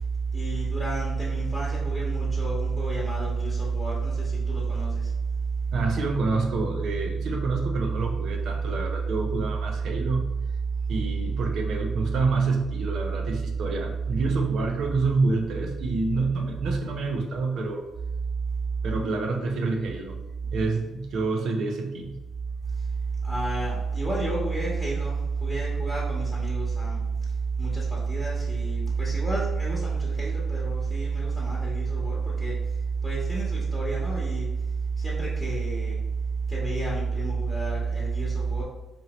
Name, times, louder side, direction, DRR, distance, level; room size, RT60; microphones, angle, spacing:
voice 1, 0.3-4.9 23.2-27.0 27.6-32.6 33.0-34.5 35.0-35.9 36.5-38.6, right 4 dB, 5° right, -7 dB, 1.2 m, -27 dB
voice 2, 5.7-10.2 10.9-17.9 18.8-20.2 20.5-22.1, right 3 dB, 70° right, 3 dB, 0.6 m, -27 dB
4.3 x 2.7 x 3.0 m, 1.0 s
cardioid pair, 90°, 0 cm